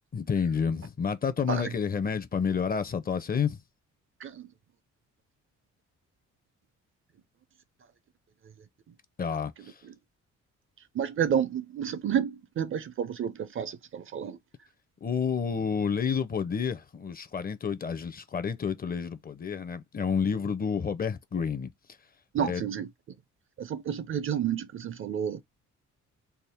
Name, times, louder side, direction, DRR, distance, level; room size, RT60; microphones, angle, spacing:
voice 1, 0.1-3.6 9.2-9.7 15.0-21.7 22.4-22.6, left 6 dB, 30° left, 0.5 m, -29 dB
voice 2, 10.9-14.4 22.3-22.9 23.6-25.4, right 8 dB, 45° right, 0.5 m, -30 dB
3.4 x 2.0 x 4.2 m
cardioid pair, 90°, 30 cm